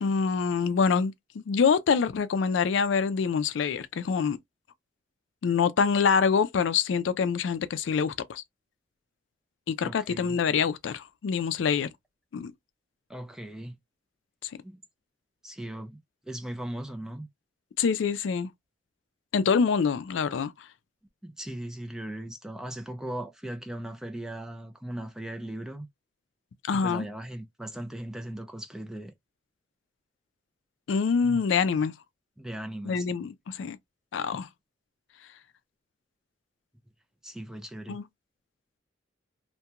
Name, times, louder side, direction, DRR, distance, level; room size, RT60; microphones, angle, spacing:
voice 1, 0.0-4.4 5.4-8.4 9.7-11.9 12.3-12.5 17.8-18.5 19.3-20.5 26.6-27.0 30.9-31.9 32.9-33.8 34.1-34.5 37.9-38.0, left 6 dB, 75° left, 0.4 m, -25 dB
voice 2, 9.8-10.4 13.1-13.8 14.6-14.8 15.4-16.0 16.2-17.3 21.2-25.9 26.7-29.1 31.2-31.4 32.4-33.1 37.2-38.0, right 1 dB, 5° right, 0.4 m, -38 dB
2.8 x 2.2 x 2.4 m
head